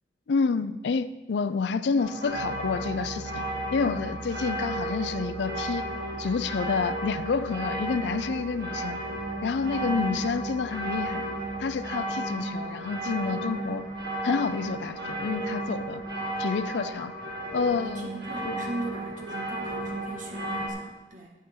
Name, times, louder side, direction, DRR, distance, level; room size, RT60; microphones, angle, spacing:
voice 1, 0.3-3.4 3.7-5.9 6.2-9.0 9.4-11.2 11.6-13.8 14.2-16.0 16.4-17.1 17.5-18.1 18.5-18.6, left 5 dB, 80° left, 0.4 m, -29 dB
sound 1, 2.0-20.7, right 1 dB, 65° right, 1.9 m, -34 dB
Piano, 2.3-11.9, right 3 dB, 85° right, 0.8 m, -44 dB
voice 2, 17.8-21.3, right 2 dB, 50° right, 1.8 m, -39 dB
11.0 x 9.4 x 3.7 m
head